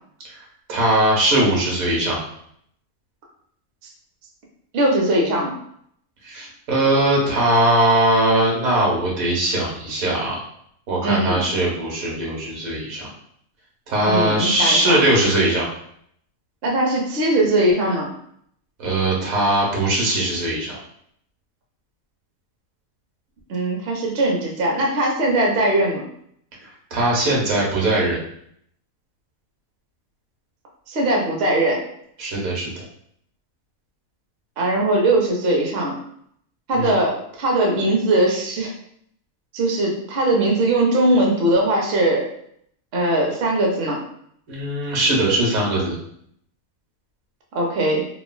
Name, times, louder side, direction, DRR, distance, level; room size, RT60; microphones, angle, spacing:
voice 1, 0.7-2.2 6.2-10.4 10.9-13.1 13.9-15.7 18.8-20.8 26.9-28.2 32.2-32.8 36.7-37.0 44.5-45.9, right 1 dB, 85° right, -3 dB, 1.3 m, -20 dB
voice 2, 4.7-5.5 11.0-11.4 14.0-15.0 16.6-18.1 23.5-26.0 30.9-31.8 34.6-35.9 36.7-38.7 39.5-42.2 42.9-44.0 47.5-48.0, right 1 dB, 55° right, -1 dB, 0.7 m, -20 dB
3.1 x 2.3 x 2.2 m, 0.68 s
omnidirectional pair, 1.4 m